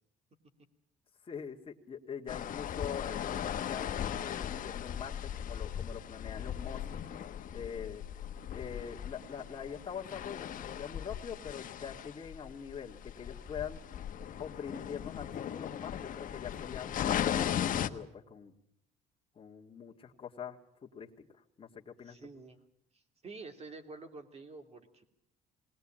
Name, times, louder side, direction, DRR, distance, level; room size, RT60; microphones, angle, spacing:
voice 1, 1.3-3.8 4.2-6.8 7.5-8.0 8.5-13.8 14.4-18.5 19.4-21.1 21.6-22.3, left 7 dB, 30° left, -1 dB, 2.0 m, -43 dB
sound 1, 2.3-17.9, left 10 dB, 55° left, 1.1 m, -38 dB
voice 2, 22.0-22.6 22.9-25.0, right 3 dB, 40° right, 6 dB, 2.8 m, -49 dB
20.0 x 19.0 x 8.8 m, 0.72 s
cardioid pair, 110°, 17 cm